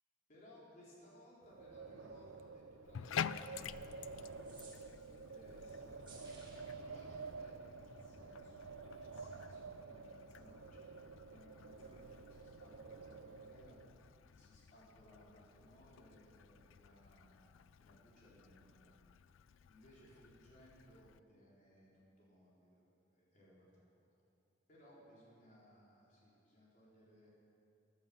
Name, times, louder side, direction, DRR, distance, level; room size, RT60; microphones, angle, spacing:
voice 1, 0.3-6.0 6.8-8.7 9.0-18.9 19.7-24.1 24.7-27.3, equal, 40° left, -6 dB, 4.5 m, -63 dB
Wind, 1.4-14.0, right 4 dB, 85° right, 0.6 m, -51 dB
Bathtub (filling or washing), 2.8-21.2, left 8 dB, 80° left, 0.4 m, -50 dB
sound 1, 4.3-5.2 6.0-6.8, right 4 dB, 25° right, 2.8 m, -59 dB
15.0 x 11.0 x 7.2 m, 2.6 s
head